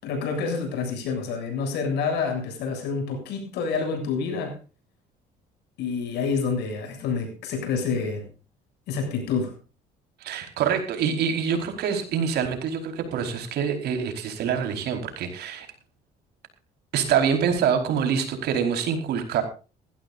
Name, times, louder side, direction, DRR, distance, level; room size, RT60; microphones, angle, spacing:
voice 1, 0.0-4.6 5.8-8.3 8.9-9.5, left 5 dB, 85° left, 4 dB, 7.6 m, -28 dB
voice 2, 10.2-15.7 16.9-19.4, right 7 dB, 75° right, 5 dB, 4.7 m, -25 dB
20.5 x 15.5 x 2.7 m, 0.34 s
cardioid pair, 110°, 17 cm